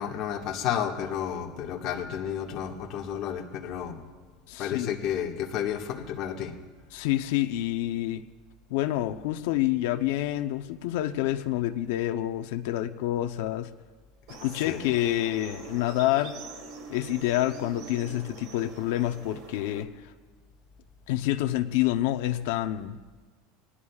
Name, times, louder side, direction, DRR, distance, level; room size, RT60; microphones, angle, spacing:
voice 1, 0.0-4.0 4.6-6.5 14.6-14.8, left 9 dB, 35° left, 0 dB, 1.6 m, -31 dB
voice 2, 4.5-4.9 6.9-8.2 8.7-13.7 14.3-16.4 16.9-20.1 21.1-23.0, left 14 dB, 65° left, 8 dB, 0.7 m, -28 dB
sound 1, 14.3-19.8, right 4 dB, 50° right, 1.7 m, -44 dB
25.0 x 19.5 x 2.4 m, 1.4 s
supercardioid pair, 175°, 0 cm